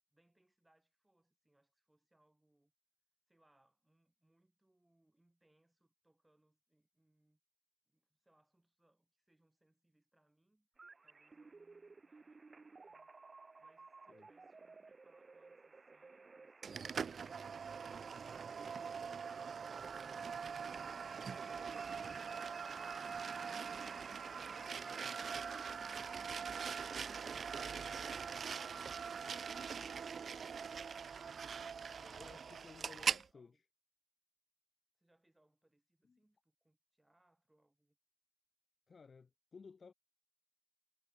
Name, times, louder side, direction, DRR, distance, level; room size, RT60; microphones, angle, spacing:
voice 1, 0.1-2.7 3.3-7.4 7.9-13.1 13.6-21.2 32.7-33.6 34.9-38.0, right 1 dB, 10° right, 6.4 m, -76 dB
sound 1, 10.8-27.8, right 4 dB, 35° right, 1.0 m, -57 dB
sound 2, 16.6-33.3, right 6 dB, 50° right, 0.5 m, -42 dB
Laughter, 20.8-26.1, left 2 dB, 15° left, 3.3 m, -65 dB
voice 2, 32.0-33.5 38.9-39.9, left 5 dB, 45° left, 0.4 m, -57 dB
supercardioid pair, 60°, 0 cm